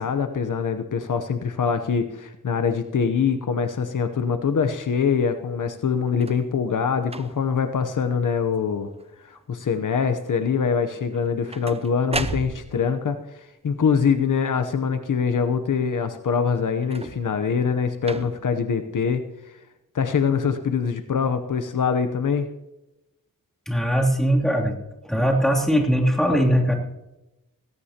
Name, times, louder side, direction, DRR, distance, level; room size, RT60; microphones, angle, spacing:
voice 1, 0.0-8.9 9.2-13.2 13.6-19.2 19.9-22.5, left 6 dB, 70° left, 8 dB, 0.9 m, -24 dB
sound 1, 6.1-6.5 7.0-7.6 8.2-8.6 8.8-9.4 11.1-13.0 16.8-17.4 18.0-18.6 19.4-19.5, right 3 dB, 20° right, 0.6 m, -35 dB
voice 2, 23.7-24.8 25.0-26.7, equal, ahead, -2 dB, 2.9 m, -20 dB
18.5 x 16.5 x 2.9 m, 0.96 s
wide cardioid pair, 95°, 33 cm